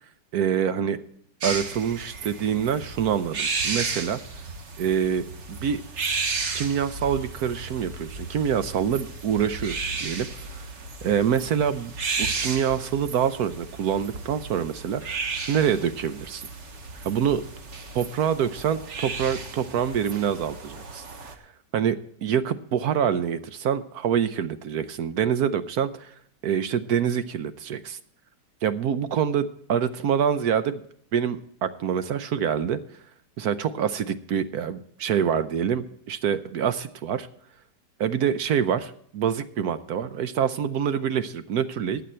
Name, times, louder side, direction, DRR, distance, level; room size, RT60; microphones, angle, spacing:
voice 1, 0.3-1.0 1.4-4.2 4.8-5.8 6.5-10.3 10.5-10.6 11.0-15.2 15.5-16.4 17.0-17.4 17.9-21.3 21.7-26.1 26.4-28.0 28.6-30.8 31.1-32.8 33.4-37.3 38.0-42.0, right 8 dB, 65° right, 12 dB, 1.1 m, -26 dB
sound 1, 1.4-21.3, right 4 dB, 45° right, 1.4 m, -34 dB
15.0 x 9.4 x 4.4 m, 0.65 s
omnidirectional pair, 1.9 m